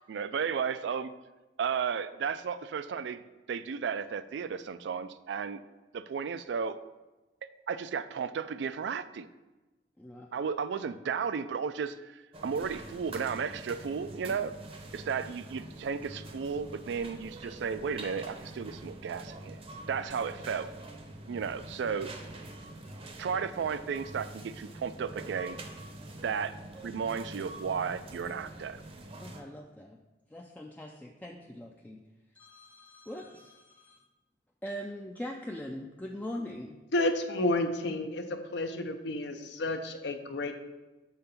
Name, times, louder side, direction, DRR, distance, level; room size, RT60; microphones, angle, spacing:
voice 1, 0.1-1.1 1.6-3.2 3.5-5.6 5.9-6.8 7.7-9.3 10.3-14.5 14.9-19.6 19.9-20.7 21.3-22.1 23.2-25.6 26.2-26.6 26.8-28.8, right 6 dB, 70° right, 13 dB, 0.3 m, -34 dB
voice 2, 10.0-10.4 29.2-30.0 30.3-32.0 32.4-34.0 34.6-36.8, equal, 10° left, 0 dB, 0.3 m, -42 dB
sound 1, 12.3-29.4, right 1 dB, 35° right, 0.7 m, -45 dB
voice 3, 36.9-40.5, left 1 dB, 65° left, 7 dB, 0.6 m, -31 dB
5.7 x 3.8 x 5.7 m, 1.1 s
head